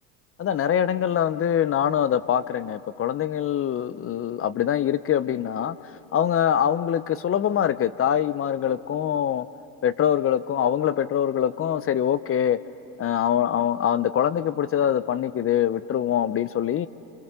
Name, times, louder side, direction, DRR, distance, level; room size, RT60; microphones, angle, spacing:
voice 1, 0.4-9.5 9.8-12.6 13.0-16.9, left 9 dB, 30° left, 16 dB, 0.7 m, -24 dB
27.0 x 26.5 x 6.7 m, 2.7 s
hypercardioid pair, 90°, 43 cm